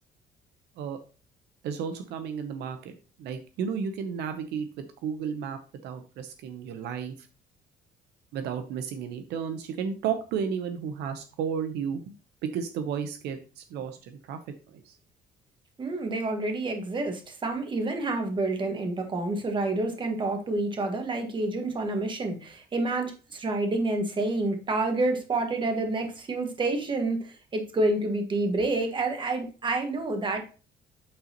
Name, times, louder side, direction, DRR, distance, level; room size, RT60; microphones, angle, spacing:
voice 1, 1.6-7.3 8.3-12.0 12.4-14.4 14.7-14.9, right 7 dB, 80° right, 8 dB, 0.8 m, -33 dB
voice 2, 15.8-30.5, right 2 dB, 30° right, 4 dB, 1.5 m, -28 dB
8.6 x 4.0 x 2.9 m, 0.34 s
cardioid pair, 110°, 17 cm